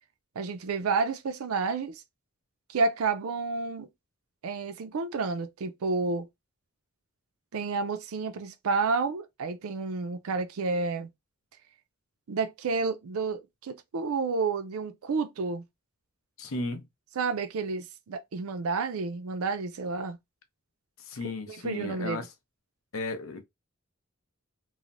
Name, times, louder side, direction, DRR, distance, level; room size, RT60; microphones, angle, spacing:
voice 1, 0.4-2.0 2.7-3.9 4.4-6.3 7.5-11.1 12.3-15.6 17.2-20.2 21.5-22.3, right 4 dB, 85° right, 0.5 m, -30 dB
voice 2, 16.4-16.8 21.0-22.3 22.9-23.5, left 3 dB, 70° left, 0.6 m, -35 dB
3.1 x 2.0 x 2.4 m
head